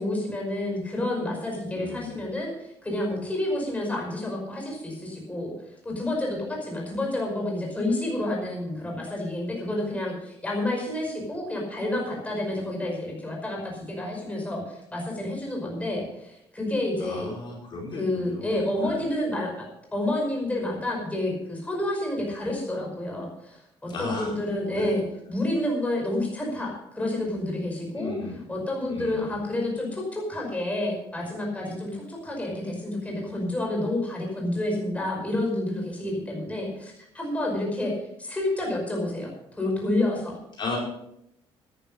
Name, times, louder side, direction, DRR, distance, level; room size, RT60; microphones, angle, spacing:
voice 1, 0.0-5.5 5.8-17.3 17.9-19.7 19.9-25.0 25.3-28.1 28.5-37.9 38.2-39.3 39.6-40.4, left 1 dB, 15° left, -1 dB, 5.3 m, -29 dB
voice 2, 1.7-2.1 17.0-19.0 23.9-24.3 24.8-24.9 27.9-28.4 28.9-29.3 40.6-40.8, left 3 dB, 50° left, -2 dB, 4.9 m, -35 dB
13.5 x 10.5 x 5.5 m, 0.78 s
cardioid pair, 120°, 10 cm